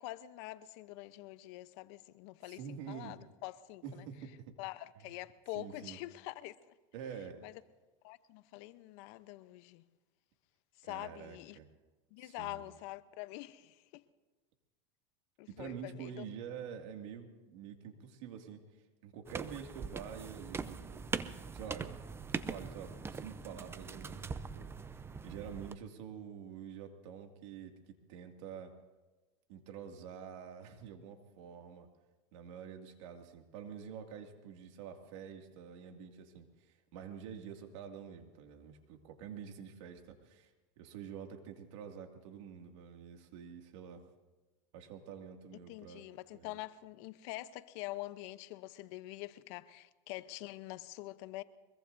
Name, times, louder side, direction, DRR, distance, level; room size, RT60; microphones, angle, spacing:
voice 1, 0.0-4.1 4.6-6.6 7.4-7.5 8.0-9.8 10.8-11.6 12.1-14.0 15.4-16.2 45.7-51.4, left 17 dB, 65° left, 0.8 m, -45 dB
voice 2, 2.4-3.2 3.8-4.5 5.0-5.1 5.5-6.0 6.9-7.4 10.8-11.7 12.2-12.7 15.5-18.6 19.0-21.1 21.5-22.0 22.3-24.7 25.2-28.7 29.5-31.9 32.3-40.5 40.8-44.0 44.7-46.0 46.3-46.6, right 7 dB, 70° right, 2.3 m, -47 dB
sound 1, 19.3-25.8, right 5 dB, 15° right, 0.6 m, -42 dB
23.5 x 22.5 x 2.7 m
supercardioid pair, 120°, 16 cm